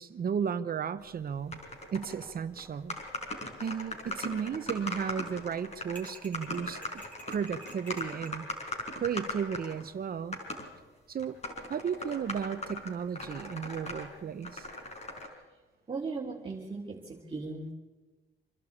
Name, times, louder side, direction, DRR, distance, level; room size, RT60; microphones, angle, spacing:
voice 1, 0.0-1.6 1.9-3.0 3.6-8.5 8.9-10.4 11.1-11.4 11.7-14.7, right 7 dB, 50° right, 11 dB, 1.0 m, -34 dB
sound 1, 1.5-2.3 2.6-2.7 2.9-9.8 10.3-10.7 11.2-14.1 14.4-15.3, left 2 dB, 35° left, 5.1 m, -39 dB
sound 2, 6.0-8.4, right 3 dB, 5° left, 3.8 m, -50 dB
voice 2, 15.9-17.7, right 4 dB, 25° right, -4 dB, 3.3 m, -38 dB
27.0 x 12.0 x 8.6 m, 1.3 s
cardioid pair, 90°, 20 cm